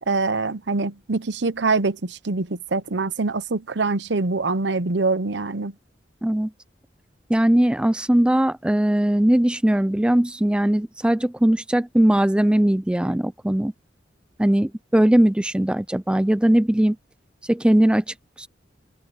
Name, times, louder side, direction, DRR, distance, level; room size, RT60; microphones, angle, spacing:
voice 1, 0.1-5.7, right 3 dB, 70° right, 0.9 m, -24 dB
voice 2, 7.3-13.7 14.4-17.0 17.5-18.5, right 1 dB, 5° right, 0.3 m, -20 dB
head